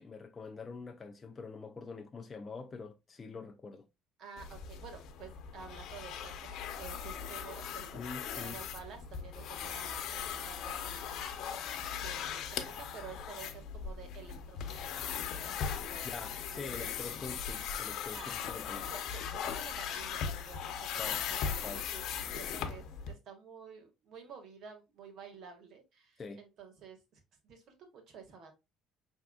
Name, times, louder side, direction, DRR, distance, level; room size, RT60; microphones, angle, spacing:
voice 1, 0.0-3.9 7.9-8.6 16.0-18.9 21.0-21.2 21.6-21.9 26.2-26.4, left 4 dB, 25° left, 0.4 m, -45 dB
voice 2, 4.2-8.0 8.3-11.6 11.9-14.9 15.2-16.1 16.5-17.1 18.1-18.3 18.9-28.5, right 6 dB, 55° right, 1.8 m, -51 dB
sound 1, 4.4-23.1, left 7 dB, 65° left, 0.8 m, -39 dB
5.8 x 3.6 x 2.4 m
cardioid pair, 120°, 0 cm